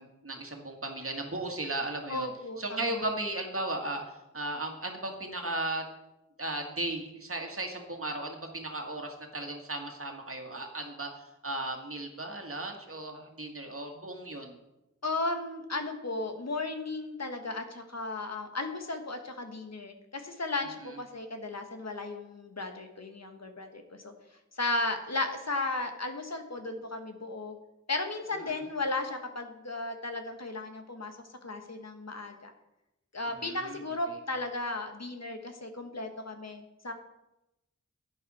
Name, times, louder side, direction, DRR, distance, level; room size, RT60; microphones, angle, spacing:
voice 1, 0.0-2.3 2.6-5.9 6.4-11.1 11.4-14.5 20.8-21.0 28.5-28.6 33.3-33.8 34.1-34.2, right 2 dB, 45° right, 3 dB, 1.9 m, -36 dB
voice 2, 2.1-2.8 15.0-24.1 24.6-27.5 27.9-31.2 31.4-32.5 33.1-36.9, left 2 dB, 60° left, 5 dB, 1.4 m, -35 dB
11.0 x 9.2 x 4.3 m, 0.93 s
wide cardioid pair, 55°, 30 cm